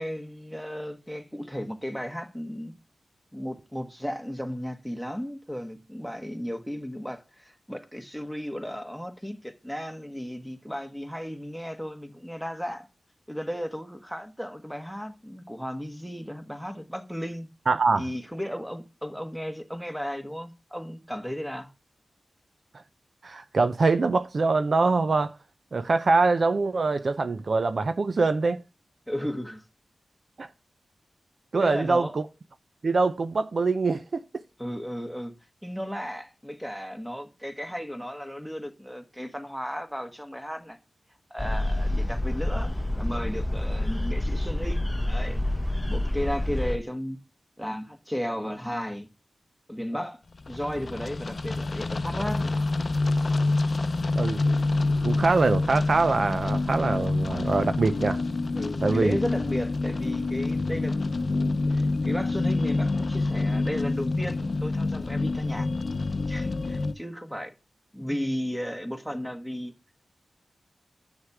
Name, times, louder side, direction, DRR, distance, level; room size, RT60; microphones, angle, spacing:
voice 1, 0.0-2.7 3.3-12.9 13.3-17.5 18.0-21.7 29.1-29.6 31.6-32.1 34.6-35.3 35.6-40.8 41.3-45.4 45.9-47.2 47.6-49.1 49.7-50.2 50.5-52.5 58.5-65.7 66.3-67.5 67.9-69.7, equal, 5° right, 1.4 m, -34 dB
voice 2, 17.7-18.0 23.2-25.3 25.7-28.6 30.4-30.5 31.5-32.2 32.8-34.2 54.1-54.4 55.0-58.2 58.8-59.2, right 3 dB, 55° right, 0.5 m, -24 dB
sound 1, 41.4-46.8, left 1 dB, 15° left, 0.9 m, -28 dB
sound 2, 50.3-66.9, left 3 dB, 50° left, 0.6 m, -27 dB
8.3 x 6.5 x 4.7 m
cardioid pair, 65°, 0 cm